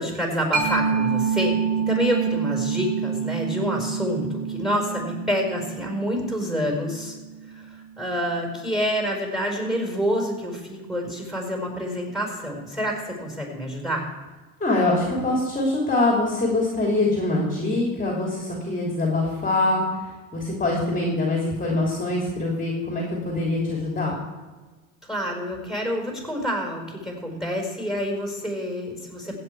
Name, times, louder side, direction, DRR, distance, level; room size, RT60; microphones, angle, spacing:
voice 1, 0.0-7.2 7.5-14.0 25.1-29.4, equal, ahead, 1 dB, 4.7 m, -27 dB
Mallet percussion, 0.5-7.8, right 6 dB, 75° right, 4.6 m, -27 dB
voice 2, 14.6-24.2, left 2 dB, 20° left, -2 dB, 3.1 m, -24 dB
16.0 x 8.3 x 4.8 m, 1.3 s
hypercardioid pair, 80°, 39 cm